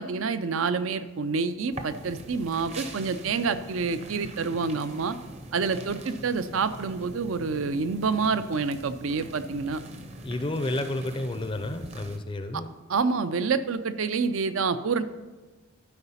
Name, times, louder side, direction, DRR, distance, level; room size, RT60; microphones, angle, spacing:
voice 1, 0.0-5.2 5.5-9.8 12.9-15.0, right 5 dB, 70° right, 12 dB, 0.5 m, -27 dB
sound 1, 1.7-12.2, right 1 dB, 30° right, 0.7 m, -42 dB
voice 2, 10.2-12.7, left 1 dB, 25° left, 8 dB, 0.4 m, -31 dB
12.0 x 4.9 x 5.6 m, 1.2 s
head